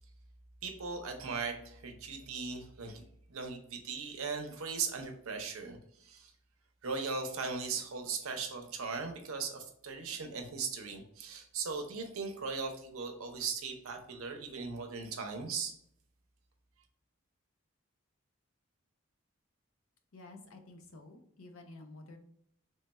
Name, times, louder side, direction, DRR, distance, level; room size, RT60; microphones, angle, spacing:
voice 1, 0.6-3.0 3.3-6.3 6.8-15.7, right 5 dB, 85° right, 5 dB, 0.7 m, -38 dB
voice 2, 20.1-22.2, left 2 dB, 80° left, 5 dB, 0.6 m, -51 dB
3.3 x 2.2 x 4.1 m, 0.69 s
head